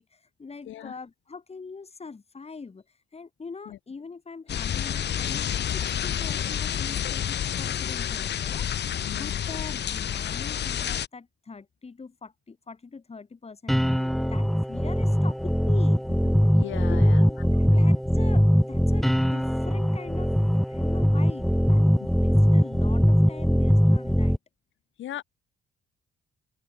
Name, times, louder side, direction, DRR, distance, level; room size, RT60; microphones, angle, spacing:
voice 1, 0.0-2.8 3.1-8.7 9.1-16.0 16.9-20.3 20.7-24.4, left 4 dB, 30° left, 7.9 m, -42 dB
sound 1, 4.5-11.1, left 9 dB, 60° left, 1.7 m, -29 dB
voice 2, 9.0-9.4 16.5-17.2 17.5-17.9 25.0-25.2, left 12 dB, 75° left, 2.4 m, -38 dB
sound 2, 13.7-24.4, equal, ahead, 1.6 m, -21 dB
cardioid pair, 90°, 20 cm